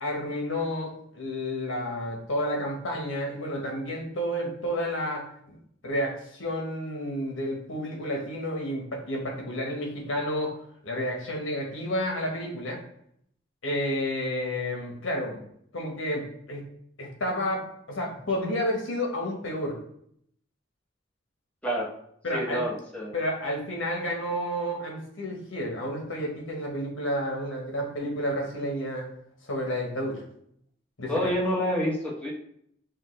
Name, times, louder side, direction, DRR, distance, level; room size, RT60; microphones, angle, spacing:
voice 1, 0.0-5.6 5.8-10.5 10.8-12.8 13.6-15.4 15.7-16.7 17.0-19.8 22.2-22.6 23.1-29.1 29.5-30.2 31.0-31.3, equal, 80° left, 0 dB, 1.2 m, -30 dB
voice 2, 22.3-23.1 31.1-32.3, equal, 5° left, -5 dB, 1.1 m, -28 dB
6.3 x 2.4 x 3.2 m, 0.68 s
head